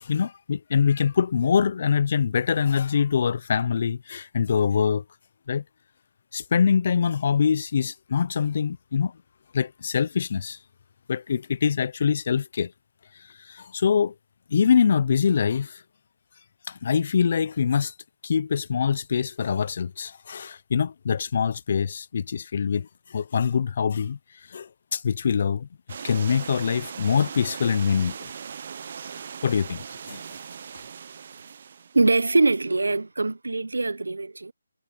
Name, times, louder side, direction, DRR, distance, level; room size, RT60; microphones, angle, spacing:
voice 1, 0.0-5.0 5.5-5.6 6.3-9.1 9.5-10.6 11.1-12.7 13.5-14.1 14.5-15.8 16.7-17.9 18.2-24.2 24.5-25.7 26.0-28.3 29.4-30.2, left 6 dB, 45° left, 0.7 m, -24 dB
sound 1, 25.9-32.0, right 7 dB, 45° right, 1.2 m, -39 dB
voice 2, 31.9-34.5, right 3 dB, 85° right, 1.0 m, -23 dB
figure-of-eight pair, 160°, 0 cm